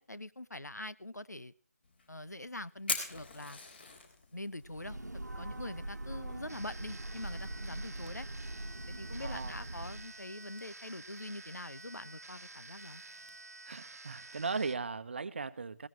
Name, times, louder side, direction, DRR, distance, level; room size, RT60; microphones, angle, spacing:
voice 1, 0.0-1.5 2.1-3.6 4.3-8.3 8.9-13.0, left 1 dB, 80° left, 1.1 m, -44 dB
Fire, 1.8-13.4, left 4 dB, 40° left, 3.9 m, -47 dB
Breathing / Train, 4.6-10.1, right 1 dB, 85° right, 1.3 m, -42 dB
sound 1, 6.5-14.8, right 3 dB, 65° right, 1.2 m, -51 dB
voice 2, 9.2-9.6 13.7-15.9, right 4 dB, 40° right, 1.0 m, -37 dB
20.0 x 17.0 x 3.0 m
figure-of-eight pair, 155°, 9 cm